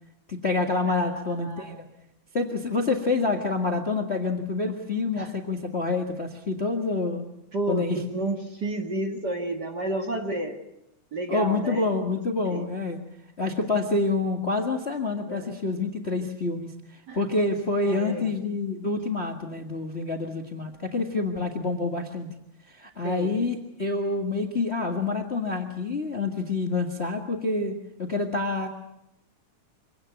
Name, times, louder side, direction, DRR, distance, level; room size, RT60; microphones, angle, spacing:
voice 1, 0.3-1.8 2.3-7.2 7.7-8.0 11.3-13.0 13.4-22.3 22.7-28.7, left 3 dB, 25° left, 3 dB, 1.5 m, -27 dB
voice 2, 0.9-1.9 5.2-5.3 7.5-10.6 11.1-11.9 12.5-12.6 15.3-15.5 17.1-17.2 17.9-18.3 23.0-23.4, right 1 dB, 40° right, 4 dB, 2.1 m, -31 dB
25.5 x 17.5 x 9.2 m, 0.86 s
omnidirectional pair, 3.5 m